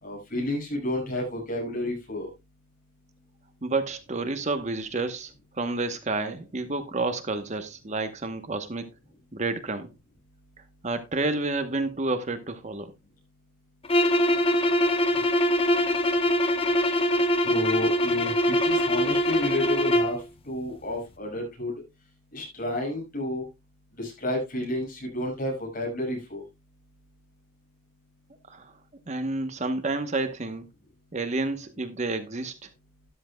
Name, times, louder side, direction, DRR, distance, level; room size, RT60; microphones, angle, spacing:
voice 1, 0.0-2.3 17.4-20.2 20.5-21.7 22.3-23.5 24.0-26.4, left 1 dB, 40° left, 6.2 m, -30 dB
voice 2, 3.6-5.3 5.6-8.9 9.3-9.9 10.8-12.9 28.5-28.7 29.1-30.6 31.1-32.5, right 3 dB, 35° right, 1.0 m, -29 dB
sound 1, 13.8-20.2, equal, 25° left, 0.9 m, -23 dB
13.0 x 11.5 x 2.2 m
head